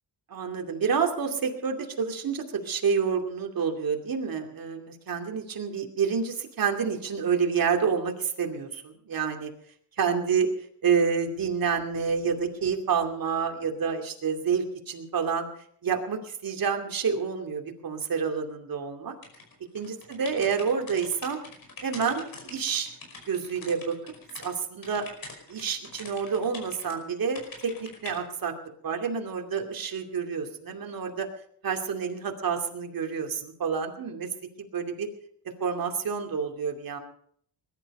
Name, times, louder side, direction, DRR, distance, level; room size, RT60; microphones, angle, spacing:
voice 1, 0.3-9.5 10.0-10.5 10.8-15.5 15.8-19.1 19.7-21.4 21.8-22.9 23.3-24.0 24.4-25.0 25.5-28.5 28.8-31.3 31.6-34.3 34.6-35.1 35.6-37.0, right 6 dB, 55° right, 3 dB, 2.7 m, -28 dB
sound 1, 19.2-24.5 24.8-27.0 27.3-28.2, left 3 dB, 50° left, 5.3 m, -44 dB
20.5 x 11.5 x 5.4 m, 0.63 s
wide cardioid pair, 140°, 42 cm